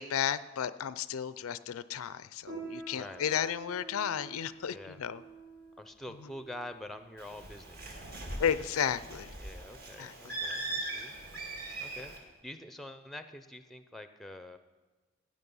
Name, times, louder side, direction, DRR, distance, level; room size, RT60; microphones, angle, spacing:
voice 1, 0.0-5.2 8.4-9.3 10.0-10.3, left 8 dB, 75° left, 15 dB, 0.4 m, -33 dB
Piano, 2.4-12.4, right 3 dB, 70° right, 3.5 m, -50 dB
voice 2, 2.9-3.5 4.7-5.0 5.8-8.1 9.4-11.1 11.8-12.1 12.4-14.6, left 1 dB, ahead, 9 dB, 0.6 m, -46 dB
Bird, 7.2-12.2, right 2 dB, 45° right, 1.8 m, -40 dB
15.5 x 9.3 x 5.4 m, 1.3 s
head